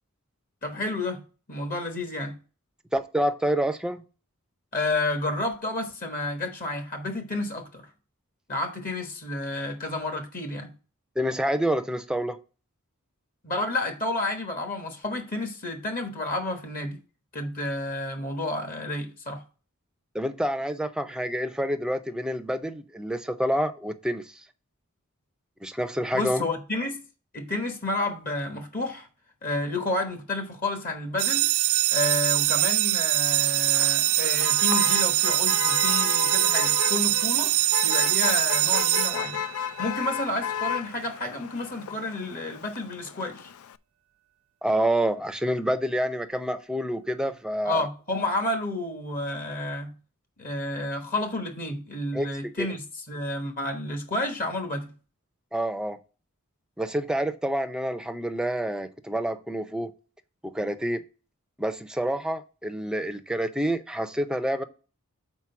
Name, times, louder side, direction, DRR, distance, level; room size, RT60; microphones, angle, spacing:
voice 1, 0.6-1.2 1.5-2.3 4.7-7.9 8.5-10.7 13.4-17.0 17.3-19.4 26.1-27.0 27.3-29.1 29.4-31.5 31.9-37.5 37.8-39.4 39.8-43.5 47.6-49.9 50.4-54.9, left 2 dB, 40° left, 1.2 m, -30 dB
voice 2, 2.9-4.0 11.2-12.4 20.1-24.4 25.6-26.4 44.6-47.9 52.1-52.3 52.6-52.7 55.5-56.0 56.8-59.9 60.4-61.0 61.6-64.6, right 1 dB, 5° right, 0.6 m, -28 dB
sound 1, 31.2-39.9, right 18 dB, 70° right, 0.4 m, -23 dB
Motor vehicle (road), 33.3-43.8, left 9 dB, 80° left, 0.4 m, -34 dB
6.1 x 4.5 x 5.7 m
head